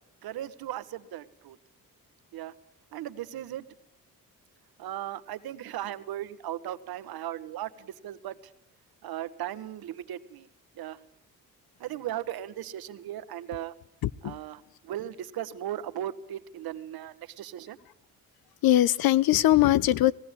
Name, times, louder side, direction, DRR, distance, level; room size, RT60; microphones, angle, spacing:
voice 1, 0.2-1.6 2.3-2.5 2.9-3.7 4.8-8.4 9.0-10.5 10.7-11.0 11.8-13.7 14.2-17.8, right 12 dB, 75° right, 1.3 m, -37 dB
voice 2, 14.0-14.4 18.6-20.1, left 14 dB, 75° left, 0.8 m, -21 dB
19.0 x 17.0 x 9.8 m
supercardioid pair, 65°, 37 cm